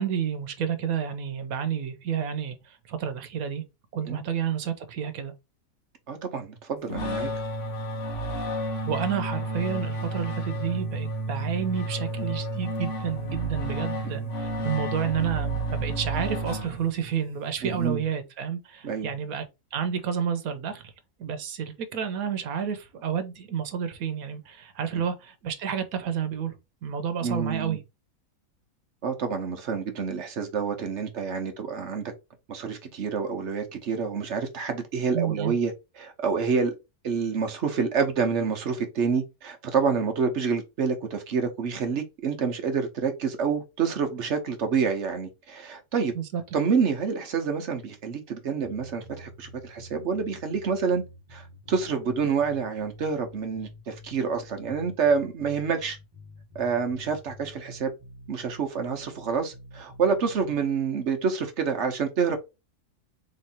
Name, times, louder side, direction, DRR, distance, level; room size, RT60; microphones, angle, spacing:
voice 1, 0.0-3.6 3.9-5.3 8.8-19.4 19.7-20.9 21.2-26.5 26.8-27.8 35.1-35.5 46.1-46.4, right 8 dB, 90° right, 1.2 m, -30 dB
voice 2, 6.1-7.3 12.2-12.3 14.0-14.3 17.6-18.0 18.8-19.1 24.9-25.0 27.2-27.8 29.0-32.0 32.5-35.7 36.0-36.7 37.0-46.1 46.5-51.0 51.3-56.0 56.5-57.9 58.3-62.4, right 5 dB, 55° right, 1.2 m, -28 dB
sound 1, 6.9-17.2, right 1 dB, 60° left, 1.5 m, -31 dB
sound 2, 48.6-60.6, left 2 dB, 30° right, 1.2 m, -48 dB
3.7 x 3.2 x 4.2 m
omnidirectional pair, 1.5 m